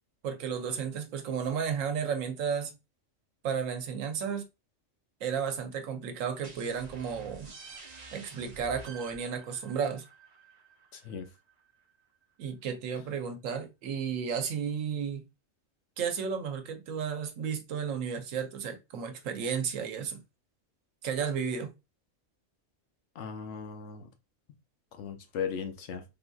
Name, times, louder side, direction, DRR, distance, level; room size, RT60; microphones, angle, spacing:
voice 1, 0.2-2.7 3.4-4.5 5.2-7.5 8.1-10.0 12.4-15.3 16.0-20.2 21.0-21.7, right 7 dB, 80° right, 1.1 m, -33 dB
sound 1, 6.4-11.9, right 4 dB, 40° right, 0.6 m, -49 dB
voice 2, 10.9-11.3 23.2-24.1 24.9-26.0, left 7 dB, 70° left, 0.9 m, -37 dB
3.8 x 2.6 x 2.2 m
omnidirectional pair, 1.3 m